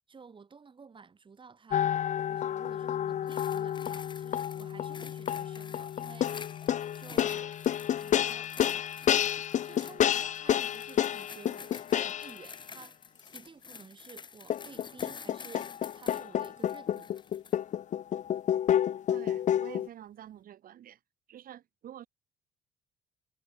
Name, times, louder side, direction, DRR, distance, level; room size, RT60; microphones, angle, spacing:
voice 1, 0.1-6.6 6.9-7.6 8.0-8.9 9.6-13.0 13.3-17.1, right 5 dB, 30° right, 5.2 m, -52 dB
sound 1, 1.7-12.4 14.5-19.9, left 10 dB, 45° left, 0.7 m, -30 dB
sound 2, 3.3-17.6 18.2-18.4, left 5 dB, 25° left, 1.1 m, -49 dB
voice 2, 19.1-21.0 21.3-22.1, right 11 dB, 55° right, 4.0 m, -48 dB
cardioid pair, 110°, 17 cm